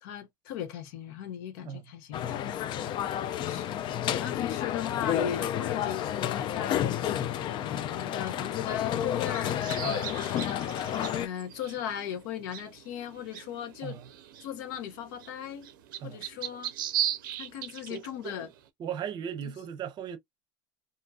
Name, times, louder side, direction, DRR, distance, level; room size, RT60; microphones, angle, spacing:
voice 1, 0.0-2.6 3.4-3.8 4.2-6.9 7.4-9.6 10.2-10.7 11.2-14.0 14.4-15.7 16.0-16.7 17.4-18.5, left 9 dB, 75° left, 0.8 m, -37 dB
sound 1, 2.1-11.3, left 10 dB, 50° left, 0.4 m, -31 dB
sound 2, 9.1-18.6, right 11 dB, 85° right, 0.5 m, -38 dB
voice 2, 17.9-18.5 18.8-20.2, right 8 dB, 45° right, 0.7 m, -38 dB
2.6 x 2.6 x 2.2 m
hypercardioid pair, 90°, 11 cm